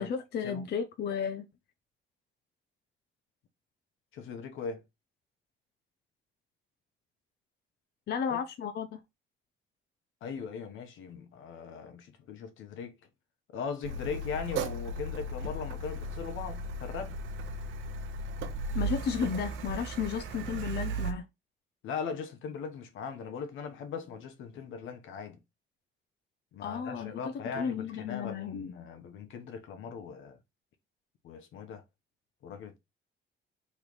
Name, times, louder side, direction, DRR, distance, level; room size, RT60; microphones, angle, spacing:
voice 1, 0.0-1.5 8.1-9.0 18.7-21.3 26.6-28.7, left 7 dB, 55° left, 0.5 m, -33 dB
voice 2, 4.1-4.8 8.3-8.4 10.2-13.0 13.5-17.1 21.8-25.4 26.5-30.4 31.2-31.8 32.4-32.8, left 6 dB, 80° left, 0.9 m, -39 dB
Car, 13.8-21.1, right 3 dB, 85° right, 0.6 m, -36 dB
3.1 x 3.1 x 3.8 m
cardioid pair, 90°, 20 cm